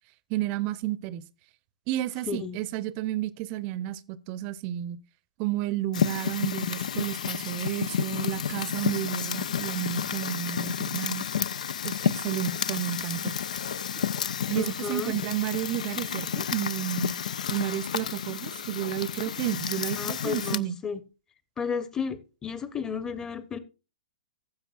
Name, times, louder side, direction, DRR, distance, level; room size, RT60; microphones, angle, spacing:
voice 1, 0.3-1.2 1.9-5.0 5.4-11.2 11.8-13.4 14.5-17.1 17.5-20.8, right 13 dB, 35° right, 0.7 m, -31 dB
voice 2, 2.3-2.6 14.5-15.1 19.9-21.0 21.6-23.6, left 6 dB, 15° left, 0.9 m, -33 dB
Fire, 5.9-20.6, left 8 dB, 70° left, 0.5 m, -31 dB
15.5 x 7.2 x 2.5 m
figure-of-eight pair, 115°, 4 cm